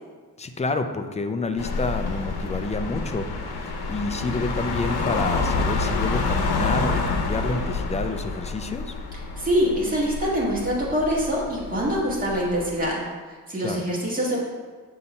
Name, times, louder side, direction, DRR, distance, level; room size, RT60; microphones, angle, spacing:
voice 1, 0.4-3.3 3.9-9.0 13.6-13.8, left 3 dB, 20° left, 7 dB, 0.3 m, -28 dB
sound 1, 1.6-12.9, left 3 dB, 85° left, 0.8 m, -28 dB
voice 2, 9.4-13.1 13.5-14.4, equal, 25° right, -6 dB, 1.6 m, -24 dB
6.9 x 2.8 x 5.3 m, 1.5 s
wide cardioid pair, 110°, 37 cm